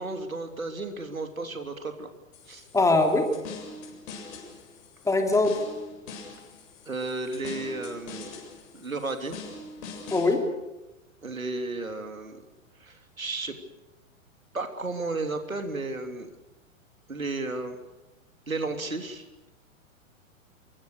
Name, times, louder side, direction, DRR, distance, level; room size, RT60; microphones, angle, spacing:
voice 1, 0.0-2.1 2.5-2.7 6.9-8.3 8.7-9.4 11.2-12.4 12.8-13.5 14.5-16.3 17.1-17.8 18.5-19.3, right 3 dB, 80° right, 6 dB, 3.3 m, -33 dB
sound 1, 2.3-10.3, left 3 dB, 40° left, 7.7 m, -43 dB
voice 2, 2.7-3.3 5.0-5.5 10.1-10.4, left 2 dB, 5° left, 4 dB, 3.2 m, -21 dB
27.5 x 24.0 x 6.8 m, 0.99 s
figure-of-eight pair, 105°, 41 cm